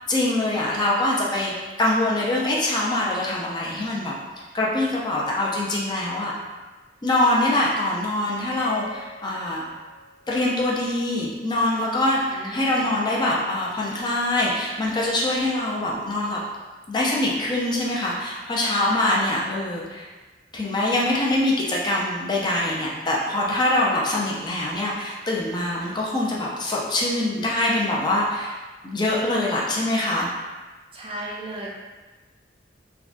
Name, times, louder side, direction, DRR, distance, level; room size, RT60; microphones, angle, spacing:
voice 1, 0.1-1.5 1.8-4.1 4.5-6.3 7.0-9.6 10.3-16.4 16.9-20.1 20.5-28.5 28.8-30.3, left 1 dB, 25° left, -4 dB, 0.4 m, -24 dB
sound 1, 8.5-10.9, left 1 dB, 85° right, 0.5 m, -43 dB
voice 2, 12.3-12.9 18.9-19.4 30.9-31.7, right 1 dB, 35° right, -4 dB, 0.5 m, -35 dB
3.5 x 2.2 x 2.5 m, 1.3 s
head